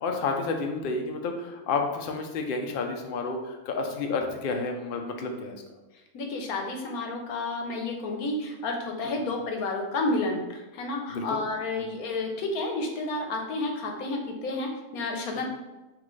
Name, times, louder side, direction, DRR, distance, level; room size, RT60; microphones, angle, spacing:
voice 1, 0.0-5.6 11.1-11.2 15.4-15.5, left 4 dB, 60° left, 3 dB, 0.6 m, -30 dB
voice 2, 6.1-15.5, left 2 dB, 90° left, 2 dB, 1.2 m, -31 dB
6.0 x 2.5 x 3.1 m, 1.1 s
omnidirectional pair, 1.5 m